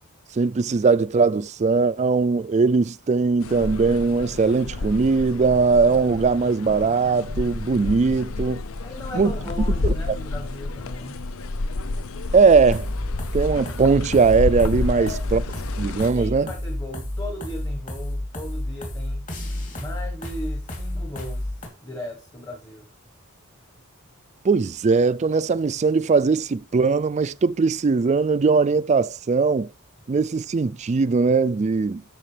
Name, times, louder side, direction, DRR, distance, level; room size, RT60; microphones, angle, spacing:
voice 1, 0.4-8.6 9.1-9.3 9.8-9.9 12.3-12.9 13.3-15.4 15.8-16.5 24.4-29.7 30.1-32.0, right 4 dB, 30° right, 0.3 m, -20 dB
sound 1, 3.4-16.1, left 2 dB, 65° left, 0.6 m, -30 dB
voice 2, 8.8-11.2 14.9-15.2 16.0-19.3 19.7-22.9, left 1 dB, 15° left, 1.3 m, -37 dB
sound 2, 12.5-21.7, left 1 dB, 35° left, 3.0 m, -31 dB
12.5 x 6.1 x 3.3 m
head